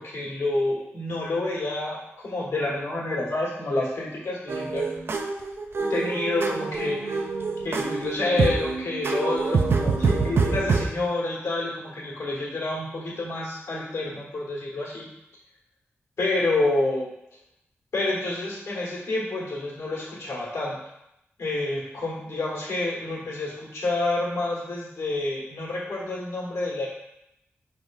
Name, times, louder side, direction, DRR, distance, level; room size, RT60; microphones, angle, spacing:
voice 1, 0.0-4.8 5.9-7.2 7.6-15.1 16.2-17.1 17.9-20.8 21.4-26.9, left 2 dB, 80° left, -5 dB, 1.5 m, -28 dB
sound 1, 4.5-10.8, right 4 dB, 55° right, 0.4 m, -25 dB
5.1 x 3.4 x 2.5 m, 0.84 s
wide cardioid pair, 120°, 5 cm